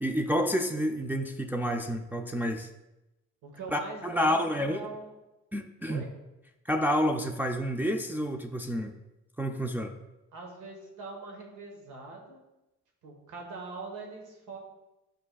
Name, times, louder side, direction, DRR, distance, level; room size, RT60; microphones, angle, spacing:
voice 1, 0.0-2.7 3.7-4.8 5.5-6.0 6.7-8.9 9.4-9.9, equal, 5° right, 3 dB, 0.4 m, -29 dB
voice 2, 3.4-5.1 5.9-6.1 10.3-12.4 13.0-14.6, right 3 dB, 85° right, 0 dB, 1.5 m, -42 dB
8.3 x 5.0 x 2.3 m, 0.96 s
cardioid pair, 90°, 30 cm